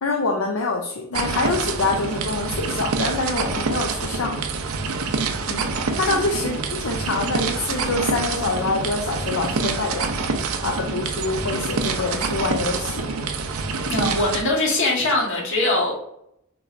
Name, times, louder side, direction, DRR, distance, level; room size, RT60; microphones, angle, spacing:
voice 1, 0.0-4.4 5.5-10.1 10.6-13.1, left 3 dB, 80° left, 2 dB, 0.6 m, -25 dB
sound 1, 1.1-14.4, right 4 dB, 85° right, 0.6 m, -26 dB
voice 2, 13.9-15.9, left 2 dB, 65° left, -2 dB, 1.5 m, -22 dB
5.9 x 3.1 x 2.6 m, 0.78 s
head